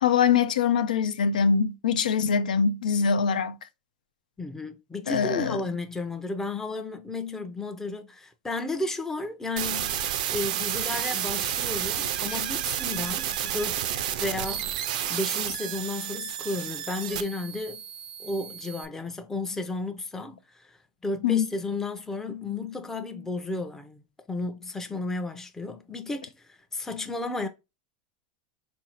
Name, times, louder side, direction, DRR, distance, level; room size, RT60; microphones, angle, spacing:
voice 1, 0.0-3.6 5.1-5.6 12.3-12.4 21.2-21.5, left 6 dB, 90° left, 0.4 m, -23 dB
voice 2, 4.4-14.7 15.1-17.8 18.2-20.8 21.0-27.5, left 2 dB, 10° left, 0.5 m, -33 dB
sound 1, 9.6-18.8, right 11 dB, 70° right, 0.4 m, -31 dB
3.9 x 2.6 x 2.9 m
hypercardioid pair, 110°, 4 cm